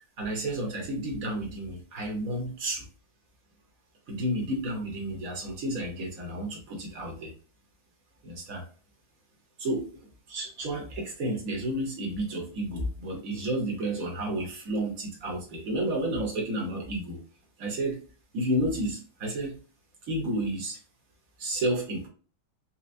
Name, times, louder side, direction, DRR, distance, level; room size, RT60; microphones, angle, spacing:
voice 1, 0.2-2.9 4.1-7.3 8.2-8.7 9.6-9.9 10.3-17.2 17.6-18.0 18.3-19.5 20.1-20.8 21.4-22.1, right 1 dB, 50° right, -1 dB, 1.3 m, -31 dB
4.4 x 2.3 x 2.6 m, 0.39 s
omnidirectional pair, 2.2 m